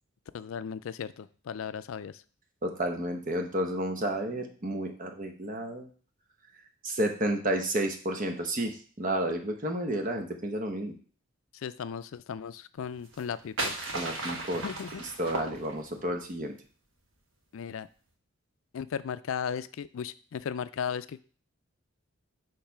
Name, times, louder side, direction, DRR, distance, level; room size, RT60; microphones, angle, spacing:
voice 1, 0.3-2.2 11.5-13.7 14.5-15.0 17.5-17.9 18.7-21.2, left 7 dB, 70° left, 15 dB, 0.3 m, -36 dB
voice 2, 2.6-5.9 6.8-10.9 13.9-14.6 15.0-16.5, right 1 dB, 40° right, 4 dB, 0.9 m, -31 dB
sound 1, 13.0-16.1, right 2 dB, 65° right, 1.3 m, -36 dB
6.6 x 3.2 x 5.6 m, 0.42 s
head